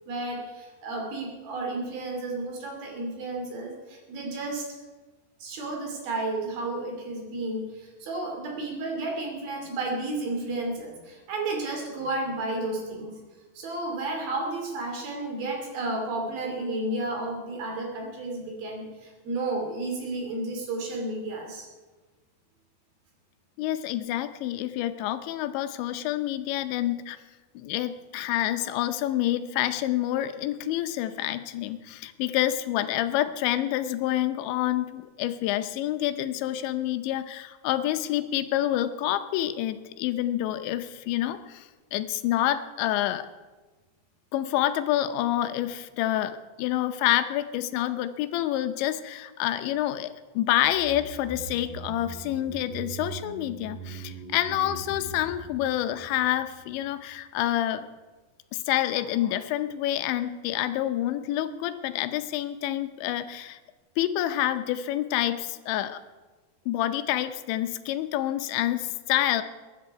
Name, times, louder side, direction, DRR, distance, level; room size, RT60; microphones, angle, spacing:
voice 1, 0.1-4.7 5.4-13.2 13.5-21.7, right 2 dB, 60° right, 1 dB, 4.2 m, -32 dB
voice 2, 23.6-27.2 27.6-41.7 41.9-43.3 44.3-50.1 50.4-57.9 58.5-63.6 64.0-66.0 66.7-69.4, left 13 dB, 85° left, 10 dB, 3.0 m, -28 dB
sound 1, 50.6-57.0 57.3-57.4, right 4 dB, 5° left, 2.4 m, -42 dB
22.5 x 10.5 x 4.7 m, 1.3 s
omnidirectional pair, 5.1 m